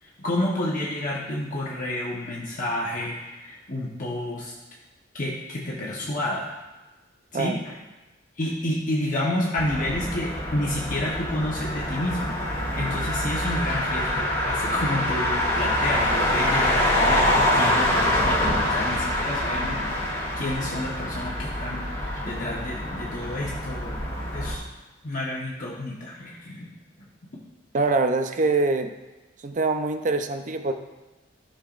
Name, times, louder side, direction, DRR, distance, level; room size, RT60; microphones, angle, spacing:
voice 1, 0.0-4.5 5.1-6.5 7.3-7.7 8.4-12.4 12.7-24.7 25.0-26.7 27.0-27.1, left 1 dB, 45° left, -5 dB, 1.0 m, -30 dB
Motor vehicle (road), 9.6-24.5, left 1 dB, 25° left, 2.6 m, -25 dB
voice 2, 27.7-28.9 29.4-30.7, right 3 dB, 40° right, 7 dB, 0.5 m, -24 dB
13.5 x 5.6 x 2.5 m, 1.1 s
head